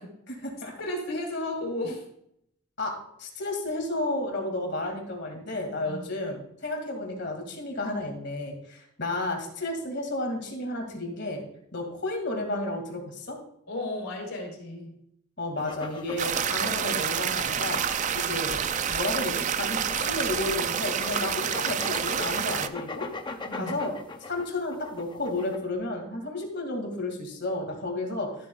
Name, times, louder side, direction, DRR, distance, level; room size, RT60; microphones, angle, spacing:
voice 1, 0.3-0.7 2.8-11.4 11.7-13.4 15.4-17.8 18.2-18.6 18.9-23.1 23.5-23.9 24.2-28.4, left 2 dB, 50° left, 3 dB, 2.1 m, -32 dB
voice 2, 0.8-2.0 5.8-6.0 13.7-14.9 23.4-23.8, left 1 dB, 70° left, 0 dB, 3.1 m, -33 dB
sound 1, 15.6-25.6, left 3 dB, 20° left, 0.6 m, -40 dB
sound 2, 16.2-22.7, right 8 dB, 35° right, 0.3 m, -28 dB
13.0 x 7.6 x 2.3 m, 0.74 s
head